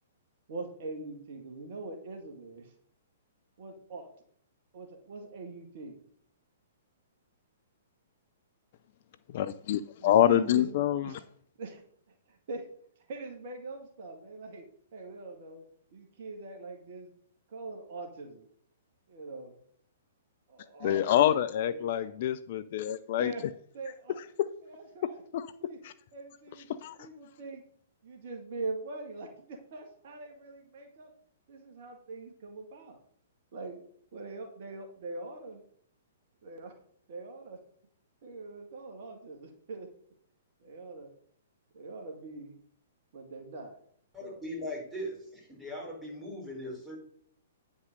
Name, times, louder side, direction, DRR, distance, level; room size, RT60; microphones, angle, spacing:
voice 1, 0.5-2.7 3.6-4.1 4.7-6.0 10.0-11.2 11.6-11.8 12.3-12.7 13.1-14.7 14.9-15.6 15.9-17.1 17.5-18.5 19.1-19.6 20.5-22.0 23.2-23.4 23.7-24.2 24.6-25.2 25.6-25.8 26.1-26.7 27.0-27.6 28.0-31.1 31.5-33.0 33.5-33.8 34.1-35.6 36.4-36.7 37.1-37.6 38.2-39.9 40.6-41.1 41.7-42.6 43.1-43.8 44.2-44.4, right 3 dB, 50° right, 4 dB, 1.8 m, -42 dB
voice 2, 9.3-11.2 20.8-23.3 25.0-25.5 25.8-25.9 26.7-27.1, left 11 dB, 45° left, 14 dB, 0.5 m, -27 dB
voice 3, 44.1-47.0, equal, 5° right, -5 dB, 5.0 m, -39 dB
9.6 x 5.4 x 6.5 m, 0.64 s
figure-of-eight pair, 115°, 0 cm